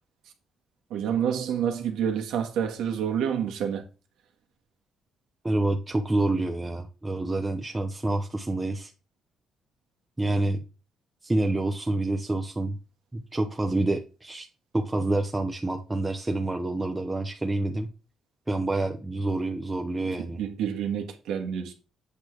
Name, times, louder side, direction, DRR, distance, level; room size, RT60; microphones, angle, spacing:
voice 1, 0.9-3.8 20.2-21.7, right 8 dB, 90° right, 1.7 m, -28 dB
voice 2, 5.4-8.9 10.2-10.6 11.2-12.8 13.1-14.5 14.7-17.9 18.5-20.4, right 2 dB, 15° right, 0.9 m, -27 dB
8.6 x 6.1 x 3.4 m
cardioid pair, 90°, 0 cm